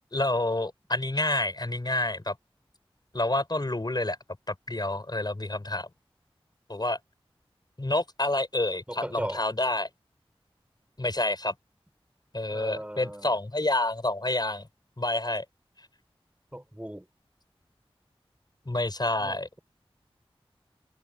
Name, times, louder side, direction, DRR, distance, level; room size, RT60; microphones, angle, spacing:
voice 1, 0.1-2.4 3.1-4.2 4.5-5.9 6.7-7.0 7.8-9.9 11.0-11.5 12.3-14.7 15.0-15.4 18.6-19.5, left 2 dB, 45° left, 6.4 m, -28 dB
voice 2, 8.9-9.4 12.5-13.3 16.5-17.0 19.2-19.6, equal, 15° right, 6.3 m, -37 dB
wide cardioid pair, 45°, 10 cm